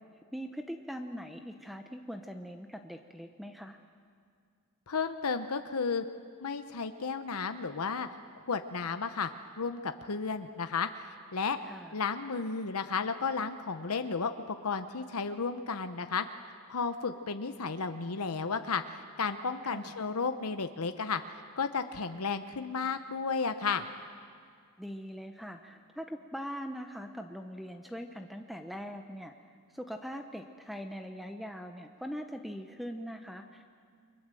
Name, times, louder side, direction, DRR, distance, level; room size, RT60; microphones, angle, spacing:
voice 1, 0.3-3.8 11.6-11.9 19.6-19.9 24.8-29.3 29.7-33.8, equal, ahead, 6 dB, 0.9 m, -42 dB
voice 2, 4.9-6.0 6.4-8.1 8.5-11.6 11.9-16.2 16.7-21.2 21.6-23.9, left 5 dB, 80° left, 8 dB, 0.9 m, -33 dB
30.0 x 23.5 x 7.7 m, 2.1 s
head